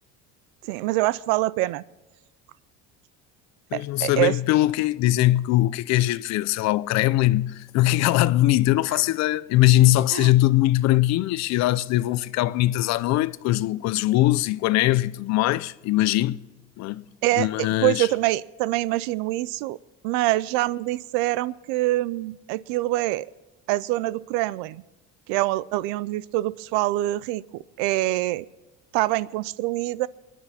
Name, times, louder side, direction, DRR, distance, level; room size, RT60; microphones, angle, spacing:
voice 1, 0.7-1.8 3.7-4.3 8.9-9.0 10.1-10.3 17.2-19.8 20.0-23.3 23.7-24.8 25.3-28.5 28.9-30.1, right 17 dB, 90° right, 0.5 m, -25 dB
voice 2, 3.7-16.4 16.8-17.0 17.4-18.1, left 16 dB, 60° left, 0.6 m, -21 dB
22.5 x 10.0 x 4.3 m
cardioid pair, 120°, 30 cm